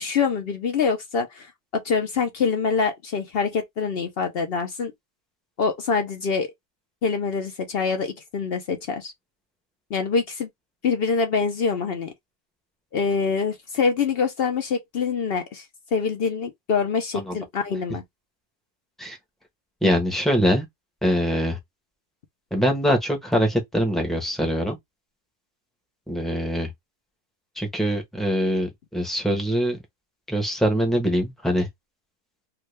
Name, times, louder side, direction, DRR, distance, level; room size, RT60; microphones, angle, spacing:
voice 1, 0.0-4.9 5.6-6.5 7.0-9.1 9.9-10.5 10.8-12.1 12.9-15.6 15.9-18.0 19.8-19.9, left 5 dB, 60° left, 0.6 m, -25 dB
voice 2, 19.8-20.6 21.0-21.6 22.5-24.8 26.1-26.7 27.6-29.8 30.3-31.7, equal, ahead, 0.6 m, -23 dB
3.6 x 2.2 x 3.2 m
omnidirectional pair, 1.7 m